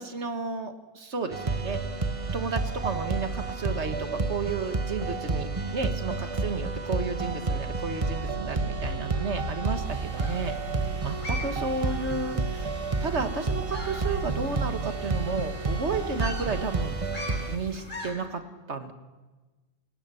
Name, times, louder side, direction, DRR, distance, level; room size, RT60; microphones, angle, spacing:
voice 1, 0.0-1.8 2.3-12.7 13.0-17.0 17.4-18.4 18.7-18.9, right 4 dB, 60° right, 8 dB, 1.9 m, -32 dB
sound 1, 1.3-17.6, right 3 dB, 25° right, 1.3 m, -30 dB
sound 2, 9.8-18.1, left 1 dB, 75° left, 6.2 m, -43 dB
29.0 x 17.5 x 7.0 m, 1.2 s
omnidirectional pair, 1.3 m